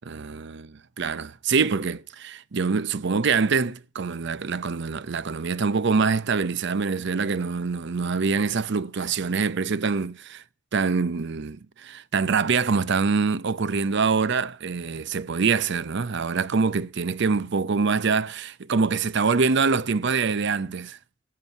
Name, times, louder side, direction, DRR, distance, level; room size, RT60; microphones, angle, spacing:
voice 1, 0.0-10.4 10.7-21.0, right 5 dB, 60° right, 0.6 m, -25 dB
17.0 x 7.7 x 5.4 m
head